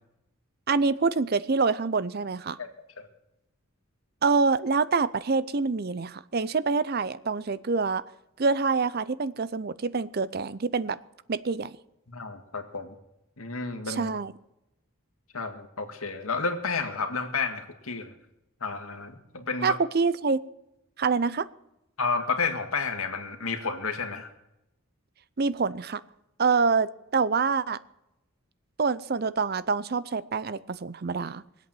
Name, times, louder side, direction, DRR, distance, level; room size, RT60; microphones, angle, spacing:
voice 1, 0.7-2.6 4.2-8.0 8.4-11.0 11.3-11.8 13.9-14.3 19.6-20.4 21.0-21.5 25.4-26.0 26.4-27.8 28.8-31.4, right 4 dB, 45° right, 17 dB, 0.5 m, -26 dB
voice 2, 12.1-12.9 13.4-14.1 15.3-18.1 18.6-19.8 22.0-24.3, left 4 dB, 80° left, 6 dB, 2.0 m, -31 dB
21.5 x 8.3 x 7.7 m, 0.88 s
head